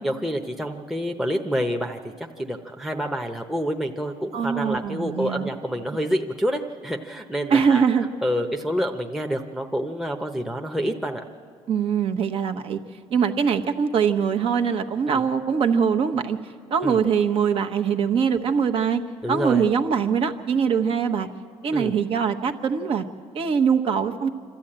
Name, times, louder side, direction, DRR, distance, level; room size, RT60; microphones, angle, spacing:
voice 1, 0.0-7.8 8.2-11.2 15.1-15.2 16.8-17.0 19.2-19.6 21.7-22.0, equal, 5° right, 2 dB, 0.8 m, -28 dB
voice 2, 4.3-5.6 7.5-8.1 11.7-12.8 13.1-16.4 16.7-19.0 19.3-21.3 21.6-23.0 23.3-24.3, right 6 dB, 55° right, 6 dB, 1.1 m, -22 dB
26.5 x 13.0 x 8.8 m, 2.1 s
cardioid pair, 120°, 11 cm